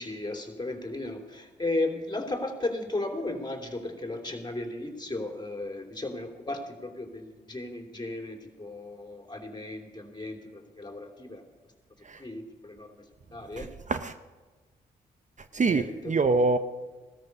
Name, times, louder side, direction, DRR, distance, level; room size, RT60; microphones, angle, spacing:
voice 1, 0.0-11.4 12.2-13.1 13.3-13.7 15.5-16.1, left 2 dB, 20° left, 3.1 m, -35 dB
voice 2, 13.6-14.1 15.5-16.6, right 3 dB, 40° right, 0.8 m, -25 dB
17.0 x 13.5 x 5.4 m
supercardioid pair, 50°, 19 cm